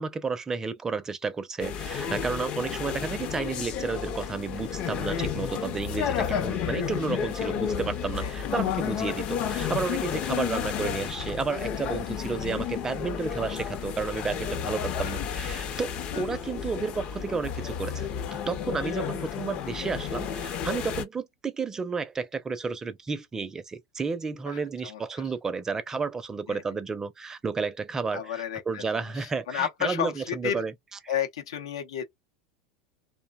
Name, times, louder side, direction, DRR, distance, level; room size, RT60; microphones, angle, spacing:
voice 1, 0.0-18.1 18.5-30.7 31.0-31.1, right 4 dB, 20° right, 0.5 m, -32 dB
sound 1, 1.6-21.0, left 8 dB, 45° left, 0.6 m, -32 dB
voice 2, 24.5-25.0 26.5-26.6 28.1-30.6 31.1-32.0, left 9 dB, 85° left, 0.7 m, -32 dB
2.6 x 2.1 x 2.2 m
hypercardioid pair, 105°, 3 cm